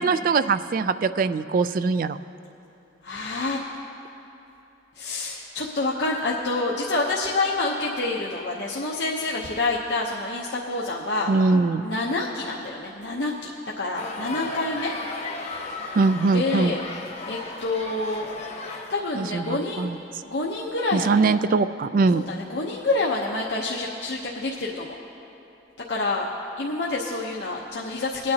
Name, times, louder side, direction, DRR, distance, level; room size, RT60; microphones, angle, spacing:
voice 1, 0.0-2.2 11.3-11.9 15.9-16.8 19.1-20.0 20.9-22.2, right 4 dB, 50° right, 13 dB, 0.3 m, -22 dB
voice 2, 3.0-3.6 5.0-11.3 11.8-13.5 13.8-14.9 16.3-16.8 17.3-18.3 18.9-19.9 20.2-21.1 22.1-25.0 25.9-26.3 26.6-28.3, left 2 dB, 65° left, -4 dB, 0.8 m, -27 dB
sound 1, 14.0-19.0, left 3 dB, 40° left, 1.1 m, -35 dB
21.5 x 9.4 x 2.8 m, 3.0 s
head